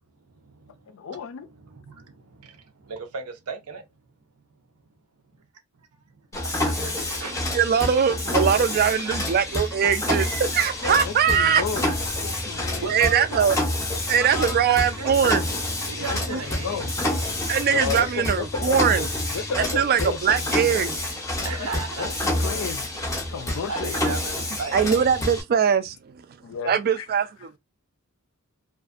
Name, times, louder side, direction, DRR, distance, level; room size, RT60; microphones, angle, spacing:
voice 1, 0.2-0.8 1.5-3.8 6.4-7.6 9.0-9.3 12.5-13.6 14.2-15.2 15.9-16.8 21.4-22.1 23.7-25.0, right 4 dB, 90° right, 0.6 m, -35 dB
voice 2, 0.9-1.5 10.8-11.9 12.2-12.9 16.0-16.9 17.7-19.0 19.3-20.5 21.4-22.9 23.3-23.9 26.4-27.1, left 6 dB, 65° left, 0.4 m, -33 dB
Mechanisms, 6.3-25.4, left 1 dB, 15° left, 0.6 m, -28 dB
voice 3, 7.5-11.6 12.9-13.6 14.1-15.4 16.3-16.4 17.5-19.1 19.5-20.9 24.7-26.0 26.6-27.6, right 7 dB, 45° right, 0.3 m, -21 dB
2.5 x 2.3 x 2.4 m
head